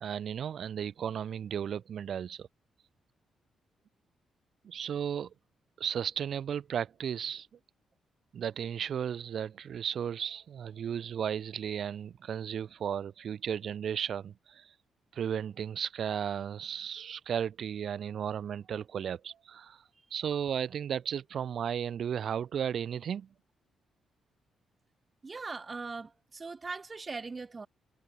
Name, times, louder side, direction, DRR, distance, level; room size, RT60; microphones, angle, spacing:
voice 1, 0.0-2.5 4.6-5.3 5.8-7.5 8.3-14.7 15.1-19.8 20.1-23.3, right 8 dB, 50° right, 1.0 m, -34 dB
voice 2, 25.2-27.7, right 4 dB, 20° right, 0.7 m, -40 dB
cardioid pair, 170°, 0 cm